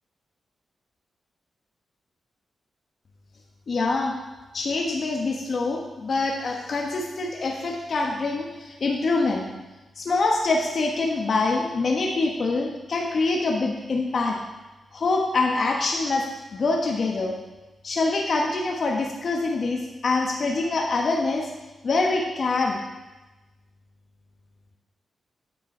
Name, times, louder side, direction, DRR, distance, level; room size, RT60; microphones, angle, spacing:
voice 1, 3.7-4.1 4.5-9.4 10.0-14.4 14.9-17.3 17.8-21.5 21.8-22.8, left 3 dB, 60° left, 0 dB, 1.2 m, -25 dB
9.3 x 7.1 x 5.5 m, 1.1 s
cardioid pair, 65°, 0 cm